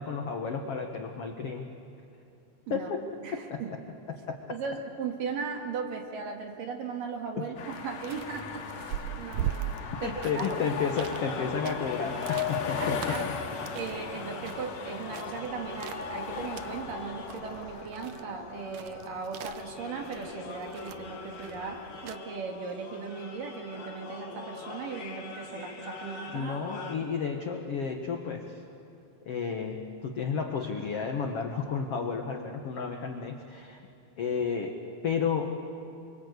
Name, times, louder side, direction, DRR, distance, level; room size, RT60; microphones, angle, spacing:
voice 1, 0.0-1.6 2.7-3.0 3.3-3.6 4.3-4.4 7.4-7.5 10.0-13.3 26.3-28.6 29.2-33.8 34.2-34.8 35.0-35.5, left 6 dB, 70° left, 3 dB, 1.4 m, -32 dB
voice 2, 3.2-3.7 4.5-10.6 12.7-13.3 13.7-26.6 27.0-27.1, right 5 dB, 60° right, 2 dB, 3.3 m, -38 dB
sound 1, 7.6-17.9, left 7 dB, 85° left, 4.0 m, -37 dB
sound 2, 7.7-22.2, right 10 dB, 90° right, 1.7 m, -42 dB
sound 3, 10.9-27.0, left 3 dB, 45° left, 2.9 m, -43 dB
29.0 x 24.0 x 8.2 m, 2.6 s
omnidirectional pair, 4.7 m